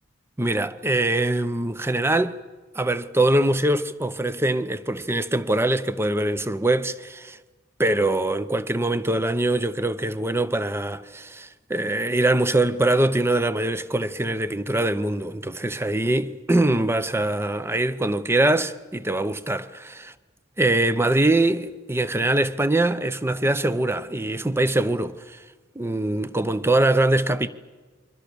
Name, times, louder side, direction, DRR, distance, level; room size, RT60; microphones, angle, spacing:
voice 1, 0.4-2.4 2.7-7.4 7.8-20.1 20.6-25.4 25.7-27.5, right 1 dB, 15° right, 0.8 m, -23 dB
29.0 x 23.5 x 6.9 m
head